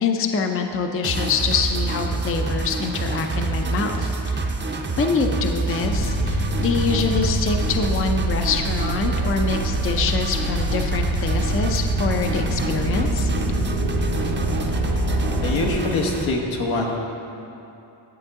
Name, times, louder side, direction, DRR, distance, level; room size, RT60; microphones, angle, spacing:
voice 1, 0.0-4.4 5.0-13.3, left 5 dB, 30° left, 5 dB, 0.4 m, -25 dB
sound 1, 1.0-16.3, right 3 dB, 25° right, 0.5 m, -26 dB
sound 2, 5.8-15.7, equal, 45° left, 1.0 m, -26 dB
voice 2, 15.4-17.0, left 2 dB, 85° left, -1 dB, 1.3 m, -24 dB
10.5 x 7.6 x 3.6 m, 2.8 s
wide cardioid pair, 170°, 47 cm